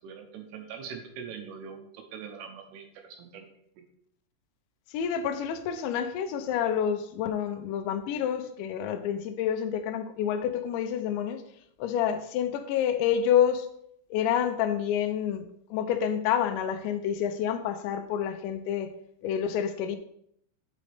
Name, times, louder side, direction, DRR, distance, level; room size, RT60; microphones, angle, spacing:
voice 1, 0.0-3.5 3.8-3.9, right 7 dB, 75° right, 4 dB, 2.6 m, -42 dB
voice 2, 4.9-11.4 11.8-13.7 14.1-15.5 15.7-18.9 19.2-20.0, left 9 dB, 85° left, 9 dB, 2.9 m, -28 dB
9.5 x 5.1 x 3.4 m, 0.70 s
omnidirectional pair, 5.3 m